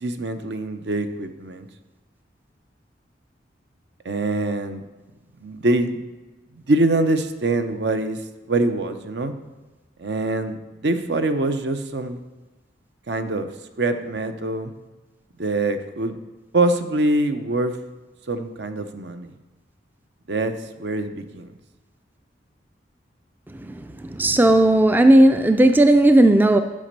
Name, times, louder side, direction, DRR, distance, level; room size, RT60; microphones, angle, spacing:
voice 1, 0.0-1.7 4.0-4.8 5.4-6.0 6.7-8.2 8.5-9.3 10.0-12.2 13.1-13.5 13.8-14.7 15.4-16.1 16.5-17.7 18.3-19.3 20.3-21.5, right 2 dB, 65° right, 8 dB, 0.7 m, -24 dB
voice 2, 23.6-26.6, right 1 dB, 10° right, 8 dB, 0.3 m, -15 dB
10.5 x 5.2 x 6.7 m, 1.2 s
head